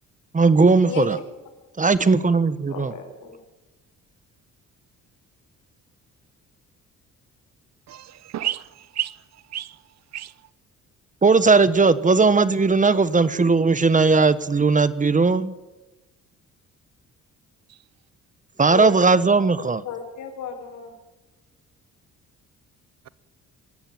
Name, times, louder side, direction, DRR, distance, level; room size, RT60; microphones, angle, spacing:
voice 1, 0.3-1.2 1.8-2.9 11.2-15.5 18.6-19.8, right 4 dB, 25° right, 1.3 m, -18 dB
voice 2, 2.7-3.4 18.7-19.0 19.8-21.0, left 8 dB, 80° left, 5.2 m, -33 dB
voice 3, 7.9-9.2 9.5-9.8 10.1-10.3, right 12 dB, 60° right, 0.8 m, -30 dB
24.0 x 14.0 x 9.5 m
cardioid pair, 90°, 30 cm